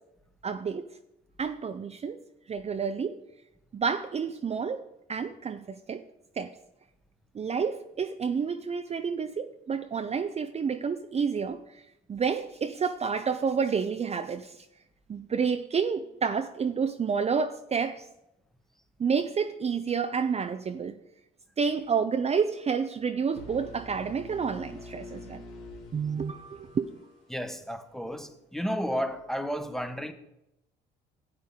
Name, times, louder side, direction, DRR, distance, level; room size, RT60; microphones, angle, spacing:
voice 1, 0.4-0.9 1.4-2.2 2.5-3.2 3.7-4.8 5.1-6.0 6.4-6.5 7.3-11.8 12.1-14.7 15.1-18.1 19.0-21.0 21.6-25.4 25.9-26.9, right 6 dB, 30° right, 0.6 m, -29 dB
sound 1, 23.3-27.2, left 1 dB, 90° left, 2.5 m, -45 dB
voice 2, 27.3-30.1, equal, ahead, 1.1 m, -32 dB
13.5 x 8.1 x 3.8 m
hypercardioid pair, 65°, 21 cm